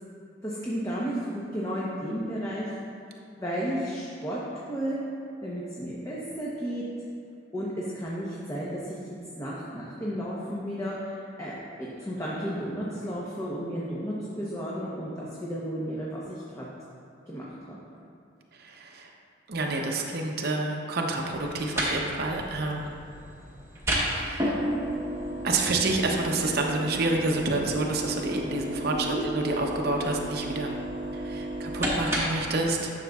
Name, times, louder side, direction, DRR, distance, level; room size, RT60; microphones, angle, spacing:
voice 1, 0.4-2.7 3.4-4.4 4.7-5.0 5.4-6.8 7.5-9.0 9.4-16.7 17.3-17.8 28.8-29.2, equal, 15° left, -7 dB, 0.8 m, -33 dB
voice 2, 18.5-19.1 19.5-23.0 23.9-24.6 25.4-30.7 31.1-32.9, right 2 dB, 50° right, 1 dB, 0.7 m, -29 dB
sound 1, 21.3-32.5, right 1 dB, 15° right, 1.0 m, -32 dB
11.0 x 6.3 x 2.3 m, 2.5 s
head